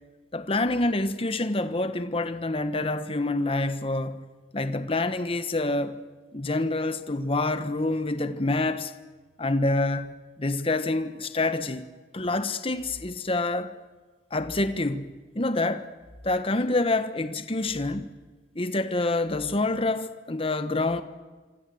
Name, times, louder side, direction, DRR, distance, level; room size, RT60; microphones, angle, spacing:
voice 1, 0.3-4.2 4.5-6.0 6.3-8.9 9.4-10.1 10.4-11.9 12.1-13.7 14.3-15.9 16.2-18.1 18.5-21.0, left 2 dB, 30° left, 1.2 m, -27 dB
27.0 x 25.5 x 7.8 m
head